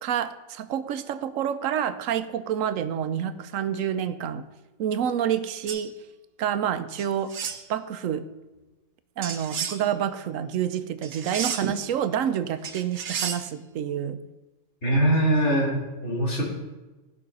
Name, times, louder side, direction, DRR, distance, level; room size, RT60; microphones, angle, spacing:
voice 1, 0.0-4.4 4.8-5.9 6.4-7.3 7.7-8.3 9.2-14.2, right 9 dB, 85° right, 12 dB, 1.0 m, -28 dB
sound 1, 5.7-5.8 7.0-7.6 9.2-9.8 11.0-11.8 12.6-13.4, right 7 dB, 60° right, 1.1 m, -32 dB
voice 2, 14.8-15.7 16.0-16.4, right 1 dB, 60° left, -4 dB, 3.2 m, -22 dB
13.5 x 5.7 x 5.3 m, 1.1 s
omnidirectional pair, 1.4 m